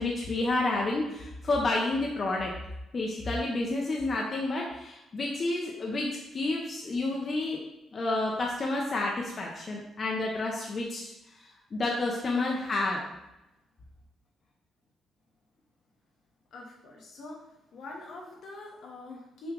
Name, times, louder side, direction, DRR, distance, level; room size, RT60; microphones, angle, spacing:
voice 1, 0.0-2.5 2.9-7.6 7.9-11.1 11.7-13.0, left 2 dB, 40° left, -2 dB, 0.8 m, -30 dB
voice 2, 16.5-17.5 17.7-19.5, left 2 dB, 70° left, -1 dB, 1.3 m, -44 dB
6.1 x 2.3 x 3.7 m, 0.91 s
cardioid pair, 90°, 0 cm